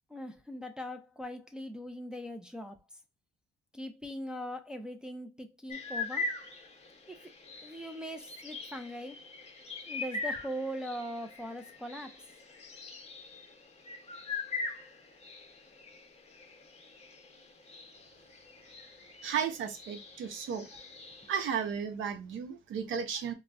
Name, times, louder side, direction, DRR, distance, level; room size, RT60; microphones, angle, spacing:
voice 1, 0.1-2.8 3.7-6.3 7.1-7.3 7.6-9.2 9.9-12.2, equal, 5° right, 0.4 m, -41 dB
sound 1, 5.7-21.7, left 3 dB, 35° left, 0.7 m, -42 dB
voice 2, 19.2-20.7 21.3-23.3, right 7 dB, 85° right, 0.7 m, -34 dB
3.8 x 2.1 x 2.3 m
cardioid pair, 90°, 20 cm